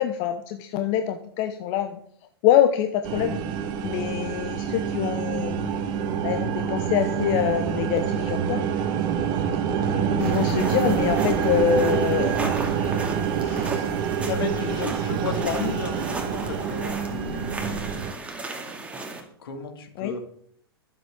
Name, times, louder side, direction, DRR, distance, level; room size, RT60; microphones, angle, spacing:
voice 1, 0.0-2.0 2.4-3.4 3.8-5.7 6.2-8.7 9.8-12.5 13.4-13.9 14.2-14.9 15.3-15.8 20.0-20.1, left 10 dB, 40° left, 7 dB, 1.1 m, -25 dB
sound 1, 3.0-18.1, right 7 dB, 35° right, 1.7 m, -26 dB
sound 2, 10.2-19.2, right 2 dB, 10° right, 2.6 m, -36 dB
voice 2, 14.3-17.9 19.4-20.2, left 4 dB, 65° left, 5 dB, 2.6 m, -35 dB
22.5 x 7.7 x 3.9 m, 0.65 s
figure-of-eight pair, 105°, 13 cm